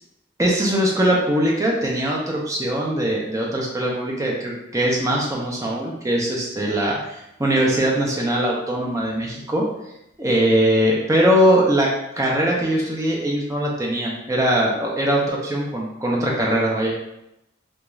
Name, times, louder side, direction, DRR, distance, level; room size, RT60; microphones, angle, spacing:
voice 1, 0.4-9.7 10.2-11.9 12.2-16.9, right 1 dB, 15° right, -3 dB, 0.4 m, -21 dB
2.4 x 2.3 x 3.0 m, 0.85 s
head